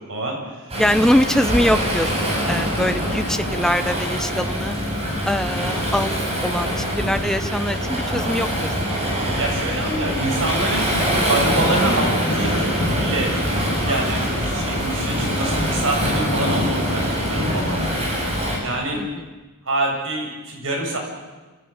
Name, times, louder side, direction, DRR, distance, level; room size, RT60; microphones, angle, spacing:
voice 1, 0.7-4.8 5.3-9.3 9.6-9.7 18.9-19.3, equal, ahead, 10 dB, 0.9 m, -23 dB
Waves surf, 0.7-18.6, equal, 30° right, 7.9 m, -23 dB
voice 2, 9.4-10.8 11.1-12.7 13.0-17.8 18.6-19.0 19.7-21.0, right 1 dB, 65° right, 0 dB, 7.8 m, -26 dB
29.0 x 16.0 x 8.9 m, 1.2 s
head